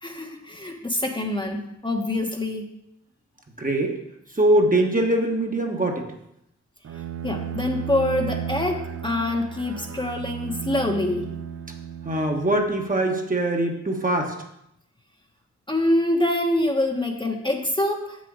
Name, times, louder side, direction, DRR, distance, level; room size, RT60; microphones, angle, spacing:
voice 1, 0.0-2.7 7.2-11.3 15.7-18.2, left 1 dB, 15° left, 2 dB, 1.1 m, -25 dB
voice 2, 3.6-4.0 4.4-6.0 12.0-14.3, right 1 dB, 30° right, 2 dB, 1.3 m, -22 dB
Bowed string instrument, 6.8-12.7, right 8 dB, 50° right, 0.5 m, -34 dB
6.8 x 6.4 x 4.8 m, 0.79 s
cardioid pair, 60°, 29 cm